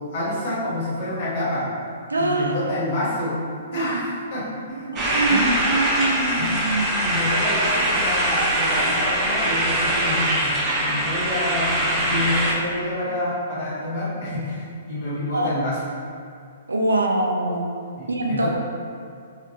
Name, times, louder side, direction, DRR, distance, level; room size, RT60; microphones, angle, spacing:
voice 1, 0.0-1.7 2.2-5.5 6.4-6.5 7.0-15.8 18.0-18.5, left 1 dB, 50° left, -7 dB, 1.3 m, -28 dB
voice 2, 2.1-2.5 4.9-7.0 15.3-15.5 16.7-17.8 18.1-18.5, right 2 dB, 85° right, 2 dB, 0.4 m, -23 dB
sound 1, 5.0-12.5, right 1 dB, 20° right, 0.7 m, -22 dB
3.5 x 3.4 x 2.7 m, 2.4 s
figure-of-eight pair, 120°, 0 cm